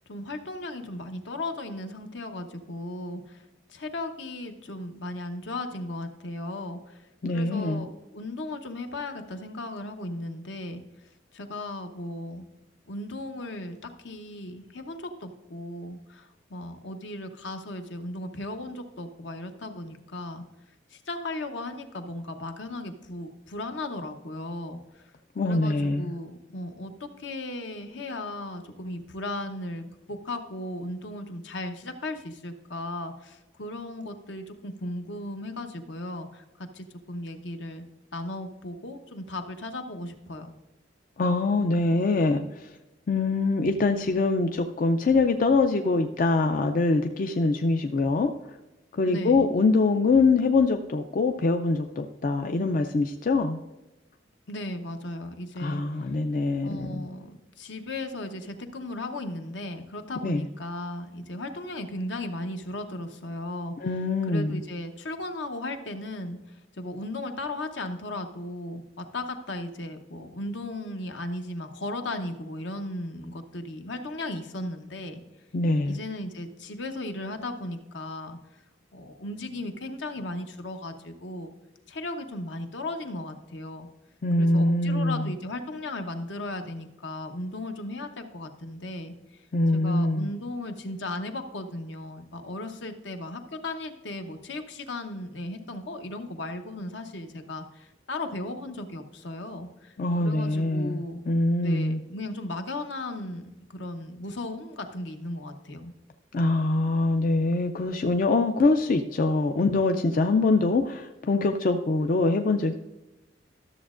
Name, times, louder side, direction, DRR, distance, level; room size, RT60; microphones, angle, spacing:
voice 1, 0.1-3.4 3.7-7.1 7.3-10.8 11.3-12.5 12.9-20.4 20.9-25.0 25.4-37.8 38.1-40.5 49.1-49.5 54.5-55.8 56.6-63.7 64.3-75.2 75.8-78.4 78.9-81.5 81.9-83.9 84.4-89.1 89.7-101.2 101.6-105.9, left 2 dB, 75° left, 6 dB, 0.9 m, -36 dB
voice 2, 7.2-7.8 25.4-26.1 41.2-42.7 43.1-48.3 48.9-53.6 55.6-57.0 60.2-60.4 63.8-64.6 75.5-76.0 84.2-85.3 89.5-90.3 100.0-102.0 106.3-112.7, left 3 dB, 45° left, 6 dB, 0.4 m, -24 dB
13.0 x 7.2 x 2.5 m, 1.0 s
head